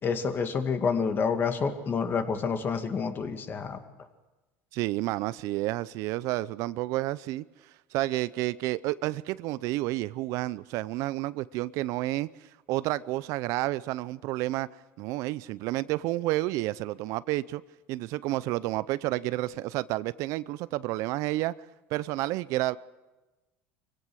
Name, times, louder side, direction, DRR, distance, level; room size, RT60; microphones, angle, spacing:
voice 1, 0.0-3.8, left 5 dB, 35° left, 2.3 m, -28 dB
voice 2, 4.7-7.4 7.9-12.3 12.7-14.7 15.0-17.6 17.9-21.5 21.9-22.8, right 17 dB, 65° right, 0.6 m, -30 dB
24.5 x 17.0 x 6.3 m
supercardioid pair, 105°, 6 cm